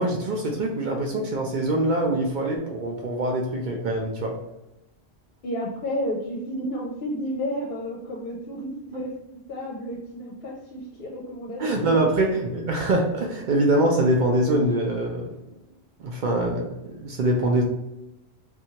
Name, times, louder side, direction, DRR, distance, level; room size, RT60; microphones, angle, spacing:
voice 1, 0.0-4.3 11.6-15.3 16.0-17.6, right 1 dB, 60° right, 0 dB, 0.5 m, -24 dB
voice 2, 5.4-9.2 9.5-12.0, equal, 65° left, -3 dB, 0.7 m, -31 dB
2.6 x 2.3 x 2.7 m, 0.89 s
omnidirectional pair, 1.1 m